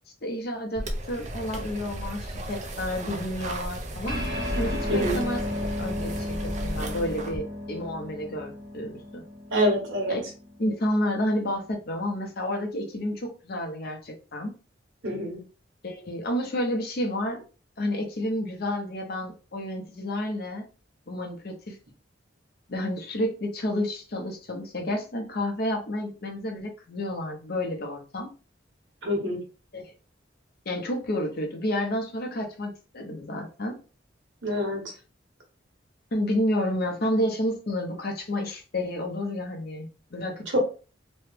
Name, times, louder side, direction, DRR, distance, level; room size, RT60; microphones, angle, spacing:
voice 1, 0.2-4.2 4.6-5.4 5.8-9.2 10.1-10.2 10.6-14.5 15.8-17.4 17.8-20.6 21.1-21.8 22.7-28.3 29.7-29.8 30.6-33.8 36.1-40.6, left 1 dB, 60° left, 2 dB, 0.8 m, -30 dB
sound 1, 0.7-7.4, right 1 dB, 40° right, 0.5 m, -35 dB
sound 2, 4.1-10.8, left 1 dB, 65° right, 1.4 m, -33 dB
voice 2, 4.9-5.2 9.5-10.2 15.0-15.4 29.0-29.4 34.4-34.9 40.5-40.6, equal, 90° right, 1 dB, 1.2 m, -26 dB
3.1 x 2.2 x 3.3 m, 0.34 s
head